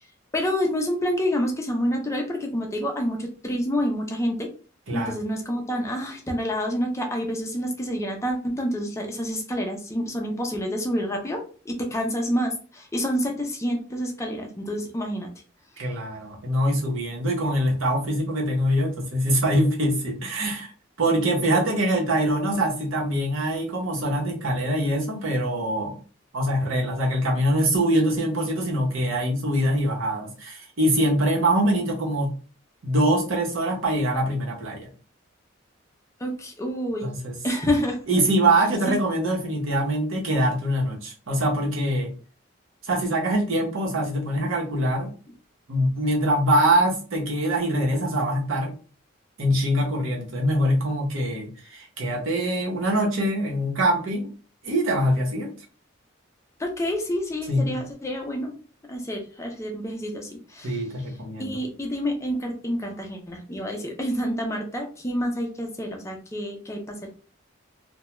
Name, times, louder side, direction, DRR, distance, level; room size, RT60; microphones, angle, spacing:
voice 1, 0.3-4.5 4.9-15.3 36.2-37.1 37.4-38.0 38.9-39.0 56.6-58.5 58.9-60.8 61.4-67.1, equal, 15° left, 3 dB, 0.4 m, -28 dB
voice 2, 4.9-5.2 15.8-20.7 21.0-26.0 26.3-32.3 32.8-34.9 37.0-37.4 38.1-42.1 42.8-45.1 45.7-48.7 49.4-54.3 54.6-55.5 57.5-57.8 60.6-61.6, right 1 dB, 85° right, -1 dB, 0.8 m, -24 dB
2.2 x 2.2 x 2.9 m, 0.38 s
head